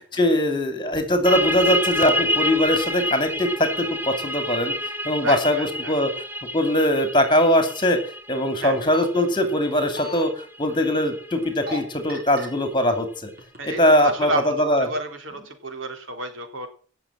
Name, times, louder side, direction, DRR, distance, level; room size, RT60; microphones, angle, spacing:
voice 1, 0.1-4.7 5.0-6.1 6.5-8.0 8.3-10.3 10.6-13.3 13.6-14.3 14.6-14.9, left 1 dB, 25° left, 7 dB, 2.7 m, -21 dB
sound 1, 1.3-12.6, left 1 dB, 10° right, 1.2 m, -29 dB
voice 2, 5.2-5.9 8.6-8.8 13.6-16.7, right 2 dB, 80° right, 6 dB, 3.2 m, -30 dB
sound 2, 8.7-9.0 9.7-10.2 11.4-11.8 12.1-12.5 13.2-13.7 14.1-14.2, equal, 50° right, 4.7 m, -34 dB
17.0 x 7.0 x 7.5 m, 0.42 s
head